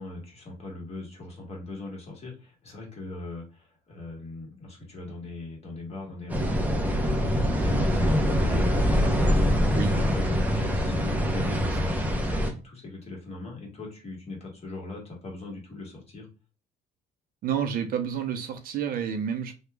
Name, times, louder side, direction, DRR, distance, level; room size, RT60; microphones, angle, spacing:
voice 1, 0.0-16.3, left 2 dB, 40° left, 1.5 m, -40 dB
sound 1, 6.3-12.5, equal, 10° right, 0.6 m, -24 dB
voice 2, 17.4-19.5, right 8 dB, 60° right, 0.6 m, -29 dB
2.9 x 2.3 x 3.4 m
cardioid pair, 110°, 17 cm